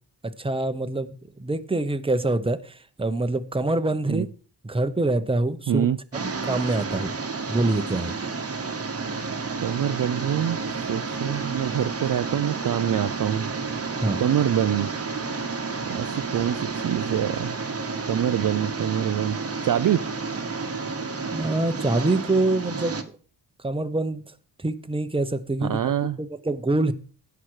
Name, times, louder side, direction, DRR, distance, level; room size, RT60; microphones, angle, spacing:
voice 1, 0.2-4.3 4.6-5.9 6.1-7.2 7.5-8.2 14.0-14.2 21.3-23.0 23.6-24.2 24.6-26.9, right 2 dB, 10° right, 0.7 m, -25 dB
voice 2, 5.7-6.0 9.6-10.6 10.9-13.5 14.2-14.9 15.8-17.5 18.1-20.0 25.6-26.2, right 10 dB, 50° right, 0.4 m, -25 dB
sound 1, 6.1-23.0, right 4 dB, 30° right, 1.1 m, -31 dB
16.5 x 5.9 x 4.8 m
wide cardioid pair, 130°, 46 cm